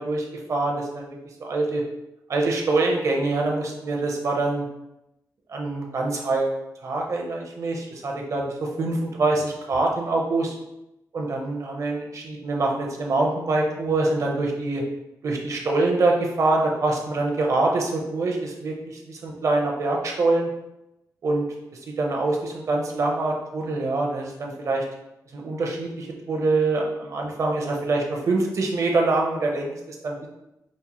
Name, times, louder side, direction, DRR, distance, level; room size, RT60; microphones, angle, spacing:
voice 1, 0.0-1.8 2.3-4.7 5.5-10.6 11.1-14.8 15.2-20.5 21.2-21.4 22.0-24.8 25.3-30.3, right 2 dB, 55° right, 0 dB, 0.7 m, -25 dB
5.1 x 2.1 x 2.9 m, 0.90 s
wide cardioid pair, 145°, 6 cm